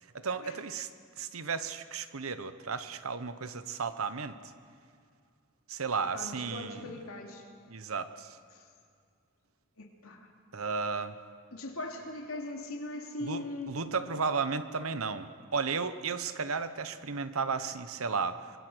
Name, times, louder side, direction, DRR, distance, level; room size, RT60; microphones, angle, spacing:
voice 1, 0.1-0.9 1.2-4.4 5.7-6.9 7.7-8.4 10.5-11.2 13.2-18.4, right 5 dB, 80° right, 11 dB, 1.1 m, -34 dB
voice 2, 6.1-7.4 8.5-8.6 9.8-10.3 11.5-13.7, left 2 dB, 90° left, 1 dB, 3.0 m, -40 dB
25.0 x 22.0 x 6.3 m, 2.2 s
head